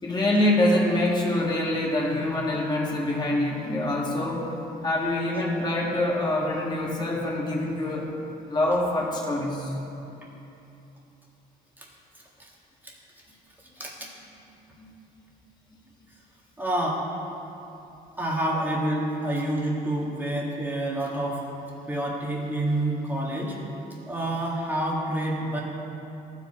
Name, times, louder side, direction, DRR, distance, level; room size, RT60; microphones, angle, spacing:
voice 1, 0.0-4.5 4.8-8.1 8.5-9.8 14.8-14.9, left 1 dB, 25° left, -3 dB, 1.8 m, -25 dB
voice 2, 13.8-14.1 16.6-17.0 18.2-21.4 21.9-23.6 24.1-25.6, right 1 dB, 10° right, -3 dB, 1.8 m, -28 dB
14.5 x 4.9 x 4.3 m, 2.9 s
cardioid pair, 110°, 17 cm